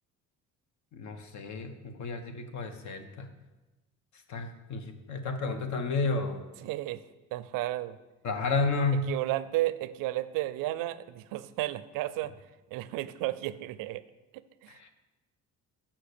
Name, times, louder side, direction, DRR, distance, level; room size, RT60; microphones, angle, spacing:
voice 1, 0.9-3.3 4.3-6.4 8.2-9.1 14.7-14.9, left 3 dB, 60° left, 7 dB, 1.0 m, -31 dB
voice 2, 6.6-7.0 7.3-8.0 9.1-12.3 12.7-14.0 14.6-14.8, right 16 dB, 85° right, 15 dB, 0.5 m, -32 dB
5.8 x 5.8 x 6.7 m, 1.1 s
cardioid pair, 105°, 32 cm